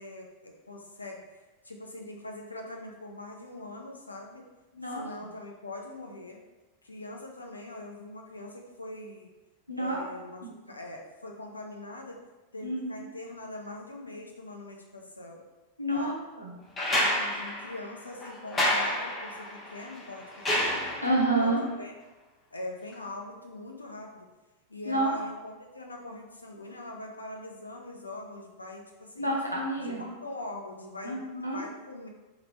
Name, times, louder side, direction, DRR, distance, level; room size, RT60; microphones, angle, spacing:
voice 1, 0.0-4.4 4.9-6.4 6.8-9.3 9.8-12.2 12.5-15.4 15.9-16.2 17.0-20.2 20.5-20.8 21.4-21.9 22.5-24.3 24.7-29.3 29.8-31.2 31.5-32.1, left 2 dB, 80° left, 1 dB, 0.6 m, -42 dB
voice 2, 4.7-5.0 9.7-10.0 10.4-10.5 12.6-13.0 15.8-16.6 21.0-21.6 24.9-25.1 29.2-30.0 31.0-31.6, right 1 dB, 90° right, -3 dB, 0.9 m, -29 dB
sound 1, 16.8-21.4 22.9-23.0, left 1 dB, 20° left, 0.9 m, -30 dB
3.8 x 3.0 x 3.5 m, 1.1 s
figure-of-eight pair, 90°, 0 cm